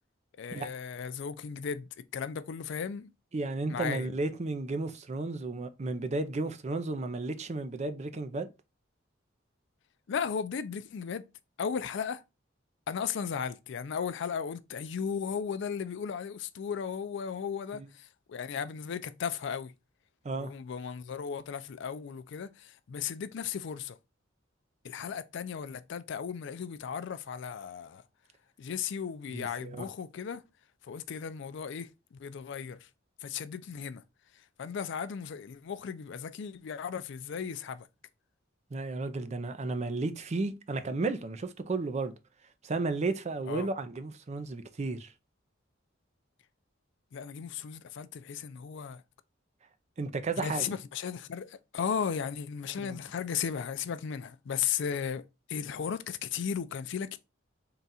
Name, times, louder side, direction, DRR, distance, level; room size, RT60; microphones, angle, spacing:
voice 1, 0.4-3.1 3.7-4.1 10.1-11.2 11.6-12.2 12.9-19.7 20.4-24.0 24.8-28.0 28.6-30.4 30.9-32.9 33.2-34.0 34.6-37.9 43.5-43.7 47.1-49.0 50.4-57.2, left 7 dB, 65° left, 0.4 m, -36 dB
voice 2, 3.3-8.5 17.7-17.9 20.2-20.5 29.3-29.9 38.7-42.1 42.6-45.1 50.0-50.7 52.8-53.0, right 3 dB, 35° right, 0.5 m, -33 dB
3.8 x 2.4 x 4.0 m
head